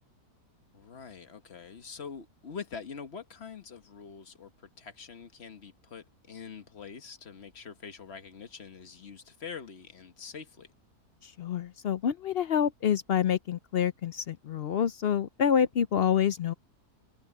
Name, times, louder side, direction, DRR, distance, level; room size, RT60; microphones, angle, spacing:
voice 1, 0.7-10.7, left 6 dB, 45° left, 1.4 m, -44 dB
voice 2, 11.2-16.5, left 8 dB, 70° left, 0.5 m, -27 dB
omnidirectional pair, 1.7 m